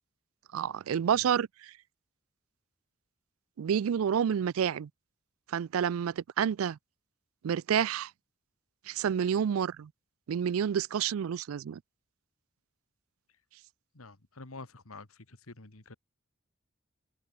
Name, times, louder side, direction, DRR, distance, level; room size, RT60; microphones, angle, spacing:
voice 1, 0.5-1.7 3.6-4.9 5.5-6.8 7.4-8.1 8.9-9.9 10.3-11.8, right 8 dB, 80° right, 0.3 m, -29 dB
voice 2, 13.9-16.0, left 3 dB, 85° left, 2.2 m, -48 dB
head